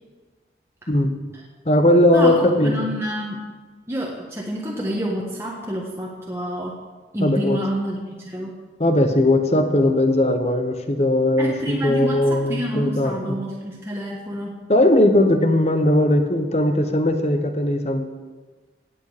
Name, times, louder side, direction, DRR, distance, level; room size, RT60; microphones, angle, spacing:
voice 1, 0.9-1.2 1.7-2.7 7.2-7.6 8.8-13.4 14.7-18.0, left 1 dB, 35° left, 7 dB, 1.0 m, -18 dB
voice 2, 2.1-3.4 3.9-6.8 7.1-8.5 11.4-14.6, equal, 15° right, -3 dB, 1.3 m, -28 dB
17.0 x 8.5 x 5.0 m, 1.4 s
head